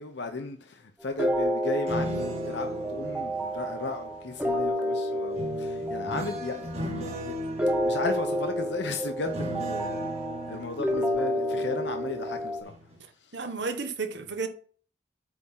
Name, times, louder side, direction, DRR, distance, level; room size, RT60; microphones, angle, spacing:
voice 1, 0.0-7.3 7.8-10.1 10.5-12.7 13.2-13.4, left 3 dB, 75° left, 0.9 m, -35 dB
sound 1, 1.2-12.6, equal, 5° right, 1.1 m, -30 dB
sound 2, 1.9-4.6 5.3-12.3 12.6-13.0, equal, 35° right, 1.8 m, -38 dB
voice 2, 13.3-14.5, right 4 dB, 75° right, 1.2 m, -32 dB
8.3 x 3.7 x 5.7 m
head